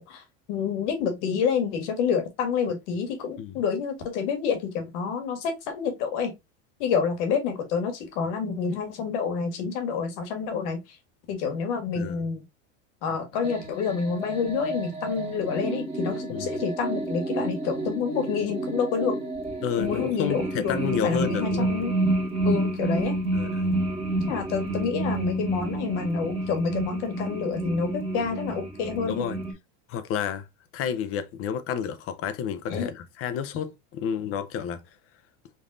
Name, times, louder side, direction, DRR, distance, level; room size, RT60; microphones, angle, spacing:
voice 1, 0.0-6.3 6.8-11.0 11.3-12.4 13.0-19.2 19.8-20.7 21.0-21.9 22.4-23.2 24.3-29.3 32.7-32.9, left 6 dB, 70° left, 1.7 m, -28 dB
voice 2, 11.9-12.3 16.3-16.6 19.6-21.7 23.3-23.8 29.1-29.4 29.9-30.5 30.7-34.8, left 7 dB, 40° left, 0.7 m, -30 dB
sound 1, 13.4-29.5, right 2 dB, 15° right, 1.4 m, -30 dB
5.3 x 2.7 x 2.4 m
supercardioid pair, 130°, 36 cm